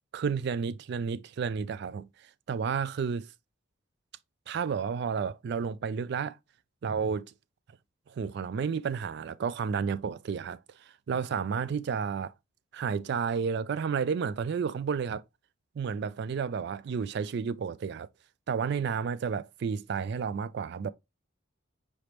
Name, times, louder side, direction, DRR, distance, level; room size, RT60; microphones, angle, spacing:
voice 1, 0.1-3.3 4.5-6.4 6.8-7.3 8.1-12.3 12.7-15.2 15.8-18.1 18.5-20.9, right 6 dB, 55° right, 0.3 m, -31 dB
5.0 x 3.3 x 2.9 m
head